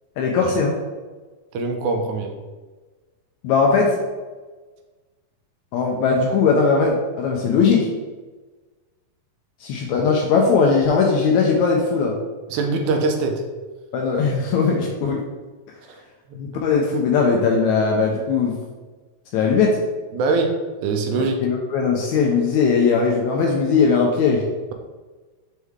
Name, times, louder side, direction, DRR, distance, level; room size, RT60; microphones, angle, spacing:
voice 1, 0.2-0.7 3.4-4.0 5.7-7.9 9.6-12.1 13.9-15.2 16.4-18.6 19.3-19.8 21.4-24.4, left 5 dB, 80° left, 0 dB, 1.7 m, -19 dB
voice 2, 1.5-2.4 12.5-13.4 15.9-16.0 16.3-16.4 20.1-21.4, right 3 dB, 75° right, 4 dB, 1.8 m, -23 dB
6.4 x 4.4 x 3.5 m, 1.3 s
omnidirectional pair, 4.0 m